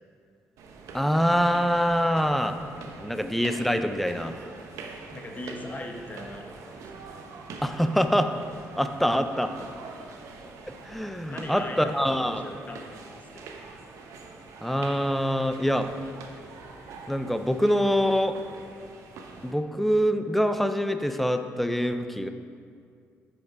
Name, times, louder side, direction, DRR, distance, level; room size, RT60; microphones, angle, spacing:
sound 1, 0.6-19.5, right 4 dB, 85° right, 0.8 m, -44 dB
voice 1, 0.9-2.6 3.0-4.3 7.6-8.3 8.8-9.5 10.7-12.4 14.6-15.9 17.1-18.4 19.4-22.3, equal, 5° left, 8 dB, 0.5 m, -25 dB
voice 2, 5.1-6.8 11.3-12.9 13.3-13.4, left 2 dB, 30° left, 2 dB, 1.0 m, -39 dB
8.5 x 5.2 x 4.7 m, 2.3 s
cardioid pair, 85°, 5 cm